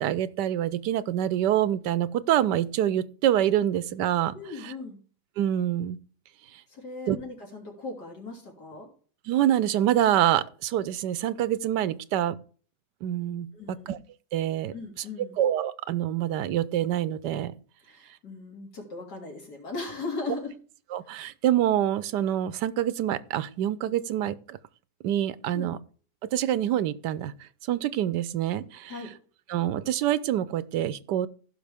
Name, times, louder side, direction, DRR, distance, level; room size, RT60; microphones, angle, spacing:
voice 1, 0.0-4.3 4.6-4.7 5.4-6.0 7.1-7.2 9.3-12.3 13.0-14.0 14.3-14.7 15.4-17.5 20.9-24.6 25.0-25.8 26.3-27.3 27.7-28.9 29.5-31.3, right 11 dB, 85° right, 1.3 m, -26 dB
voice 2, 4.3-5.0 6.7-8.9 13.5-13.9 14.7-15.4 17.8-20.5 25.5-25.7 28.9-29.1, left 3 dB, 70° left, 3.8 m, -38 dB
15.5 x 6.0 x 3.5 m
omnidirectional pair, 1.8 m